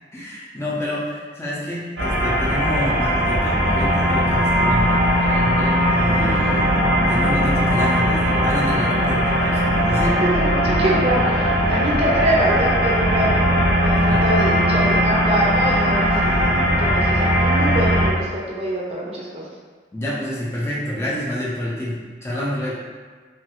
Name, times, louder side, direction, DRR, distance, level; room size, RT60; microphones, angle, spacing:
voice 1, 0.1-6.7 7.0-10.2 13.9-14.3 19.9-22.7, equal, 15° left, -7 dB, 0.6 m, -28 dB
sound 1, 2.0-18.1, equal, 90° right, 0.7 m, -19 dB
voice 2, 10.2-13.3 13.8-19.4, right 1 dB, 35° right, -4 dB, 0.5 m, -24 dB
3.2 x 2.3 x 2.9 m, 1.5 s
head